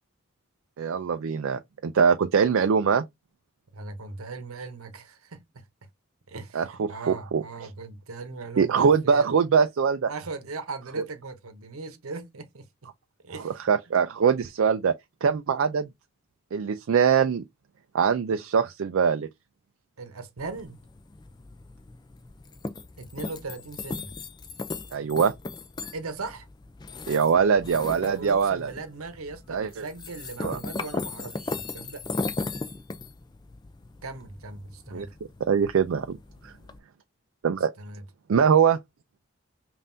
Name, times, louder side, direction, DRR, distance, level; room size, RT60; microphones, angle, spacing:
voice 1, 0.8-3.0 6.5-7.4 8.6-10.1 13.4-14.9 15.2-15.9 16.5-17.4 17.9-19.3 24.9-25.3 27.1-28.7 29.5-29.7 30.4-30.6 34.9-35.1 35.4-36.2 36.4-36.5 37.4-37.7 38.3-38.8, right 6 dB, 70° right, 0.4 m, -22 dB
voice 2, 3.7-5.7 6.3-9.4 10.1-12.9 13.2-13.6 20.0-20.8 23.0-24.1 25.9-26.5 28.2-32.0 34.0-35.1 37.8-38.0, right 3 dB, 90° right, 0.9 m, -39 dB
sound 1, 20.4-36.8, left 3 dB, 20° left, 0.3 m, -38 dB
5.4 x 2.5 x 2.6 m
head